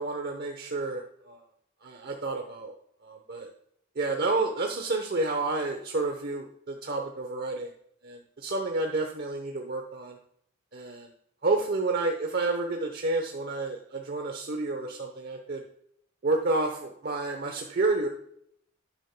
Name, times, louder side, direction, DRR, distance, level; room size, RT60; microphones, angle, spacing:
voice 1, 0.0-1.4 1.8-2.7 3.0-3.5 4.0-7.7 8.0-10.2 10.7-11.1 11.4-15.6 16.2-18.1, right 3 dB, 50° right, 3 dB, 0.8 m, -30 dB
12.5 x 9.9 x 2.2 m, 0.72 s
head